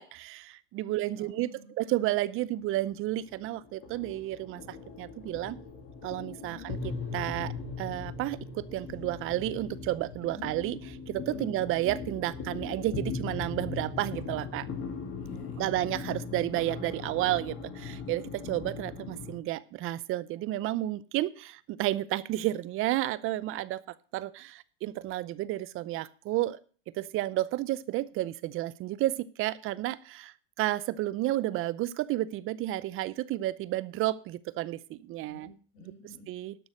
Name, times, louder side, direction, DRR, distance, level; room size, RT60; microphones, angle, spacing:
voice 1, 0.0-5.6 6.0-7.5 7.8-14.7 15.6-23.8 24.1-26.6 27.0-35.5 36.3-36.6, right 15 dB, 45° right, 19 dB, 0.7 m, -31 dB
voice 2, 1.1-1.7 6.4-6.7 10.2-10.5 11.3-11.5 15.2-15.9 35.3-36.3, left 4 dB, 85° left, 4 dB, 5.0 m, -50 dB
sound 1, 2.5-19.4, left 4 dB, 40° left, 3.2 m, -39 dB
12.0 x 6.2 x 6.4 m, 0.40 s
supercardioid pair, 110°, 30 cm